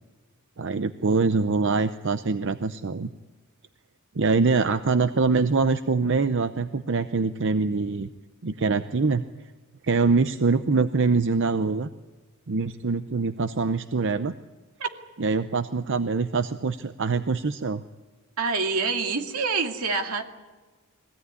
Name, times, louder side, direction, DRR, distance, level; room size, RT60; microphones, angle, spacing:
voice 1, 0.6-3.1 4.2-8.1 8.4-9.2 9.8-11.9 12.5-14.3 15.2-17.8, right 4 dB, 60° right, 11 dB, 0.7 m, -24 dB
voice 2, 18.4-20.2, right 4 dB, 80° right, 4 dB, 2.4 m, -26 dB
23.0 x 17.0 x 9.6 m, 1.3 s
head